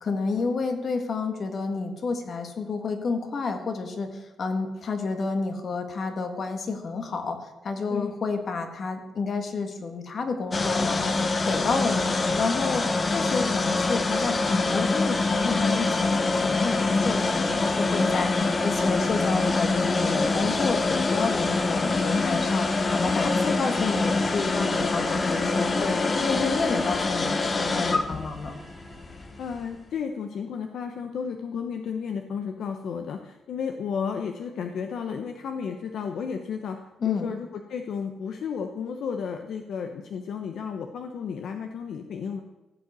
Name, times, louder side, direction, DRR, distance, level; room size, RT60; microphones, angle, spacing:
voice 1, 0.0-7.4 7.6-12.1 12.4-22.7 22.9-28.6 37.0-37.3, left 4 dB, 50° left, 6 dB, 1.6 m, -30 dB
sound 1, 10.5-29.6, left 3 dB, 30° left, 1.0 m, -25 dB
sound 2, 17.1-29.9, right 1 dB, 15° right, 2.4 m, -45 dB
voice 2, 29.4-36.8 37.0-42.4, left 6 dB, 70° left, 5 dB, 0.8 m, -33 dB
15.0 x 5.4 x 8.2 m, 1.1 s
cardioid pair, 110°, 0 cm